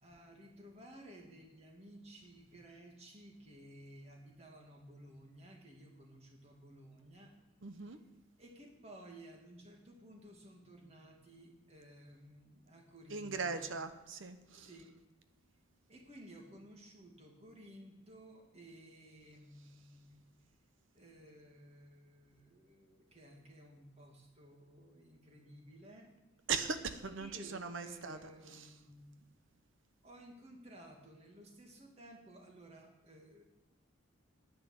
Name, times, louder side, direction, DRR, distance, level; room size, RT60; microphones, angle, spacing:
voice 1, 0.0-7.3 8.4-13.7 14.5-15.0 15.9-20.2 20.9-26.1 27.2-29.3 30.0-33.4, right 1 dB, 30° right, 1 dB, 2.1 m, -56 dB
voice 2, 7.6-8.0 13.1-14.7 26.5-28.2, right 5 dB, 70° right, 9 dB, 0.9 m, -39 dB
10.5 x 9.5 x 6.4 m, 1.0 s
head